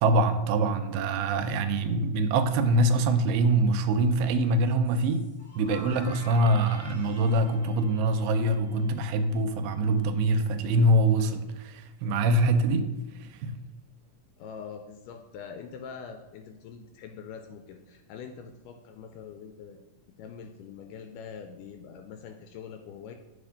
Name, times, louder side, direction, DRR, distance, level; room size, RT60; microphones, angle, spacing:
voice 1, 0.0-5.3 5.6-12.9 13.2-13.5, right 2 dB, 85° right, 9 dB, 2.3 m, -24 dB
sound 1, 4.8-9.6, equal, 60° left, 1.6 m, -49 dB
voice 2, 14.4-19.8 20.2-23.1, left 6 dB, 80° left, 5 dB, 2.0 m, -44 dB
7.3 x 4.2 x 5.0 m, 1.1 s
omnidirectional pair, 3.9 m